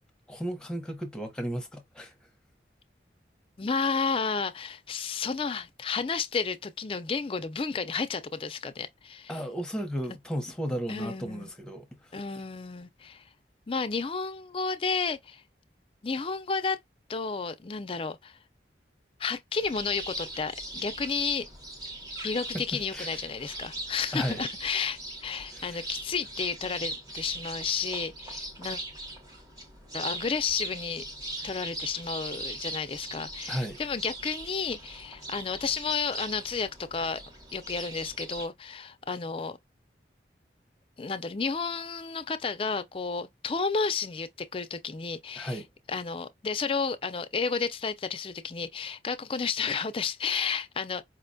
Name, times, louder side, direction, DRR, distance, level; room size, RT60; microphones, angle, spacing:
voice 1, 0.3-2.1 9.3-12.2 22.5-23.1 24.1-24.4 25.5-25.8 33.5-33.8 45.3-45.6, equal, 5° left, 0.7 m, -34 dB
voice 2, 3.6-9.3 10.9-11.5 12.1-13.2 13.7-15.4 16.0-16.8 17.1-18.4 19.2-21.5 22.2-28.8 29.9-31.0 31.4-37.2 37.5-39.6 41.0-45.6 45.9-51.0, left 5 dB, 30° left, 0.4 m, -32 dB
sound 1, 19.6-38.5, right 1 dB, 20° right, 0.9 m, -40 dB
4.8 x 2.2 x 2.6 m
head